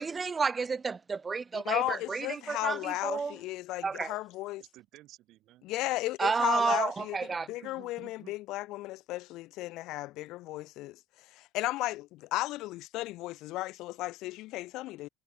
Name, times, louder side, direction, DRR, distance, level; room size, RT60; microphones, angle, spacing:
voice 1, 0.0-3.3 3.8-4.2 6.2-7.5, right 5 dB, 20° right, 0.6 m, -31 dB
voice 2, 1.5-4.6 5.6-7.2 7.5-11.0 11.3-15.1, left 18 dB, 65° left, 0.4 m, -35 dB
voice 3, 4.6-5.7 6.7-6.8 7.5-8.4, right 16 dB, 60° right, 5.3 m, -54 dB
cardioid pair, 140°, 0 cm